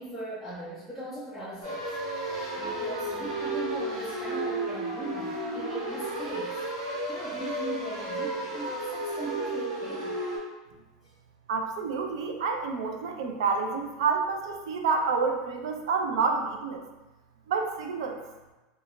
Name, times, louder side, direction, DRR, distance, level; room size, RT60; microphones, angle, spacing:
voice 1, 0.0-2.0 2.6-10.2 11.0-11.1, right 1 dB, 10° right, -10 dB, 0.4 m, -39 dB
sound 1, 1.6-10.4, right 2 dB, 70° right, 1.2 m, -33 dB
voice 2, 11.5-16.8 17.5-18.2, right 4 dB, 85° right, 4 dB, 0.4 m, -28 dB
2.3 x 2.2 x 2.9 m, 1.1 s
supercardioid pair, 165°, 3 cm